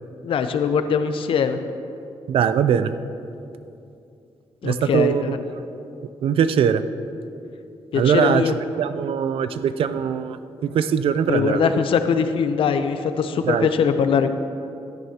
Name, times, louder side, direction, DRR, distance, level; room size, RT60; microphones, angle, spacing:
voice 1, 0.2-1.6 4.6-5.4 7.9-8.5 11.3-14.3, left 6 dB, 65° left, 9 dB, 0.6 m, -21 dB
voice 2, 2.3-2.9 4.6-5.4 6.2-6.8 7.9-8.4 8.8-11.8 13.4-13.7, right 8 dB, 65° right, 12 dB, 0.4 m, -21 dB
13.0 x 10.5 x 2.9 m, 2.7 s
wide cardioid pair, 155°, 10 cm